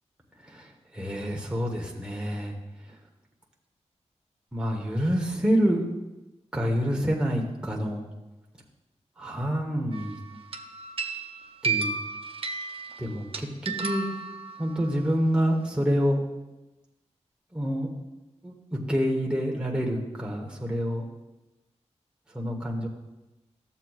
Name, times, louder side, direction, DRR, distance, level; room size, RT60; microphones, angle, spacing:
voice 1, 0.4-2.6 2.9-3.0 4.5-5.9 6.5-8.0 9.2-10.2 11.6-11.9 13.0-14.1 14.6-16.2 17.5-17.9 18.4-21.1 22.3-22.9, equal, 10° right, -1 dB, 1.1 m, -27 dB
sound 1, 9.9-10.2 10.5-14.9, right 4 dB, 50° right, 0.6 m, -33 dB
13.5 x 7.4 x 2.4 m, 1.0 s
wide cardioid pair, 135°, 12 cm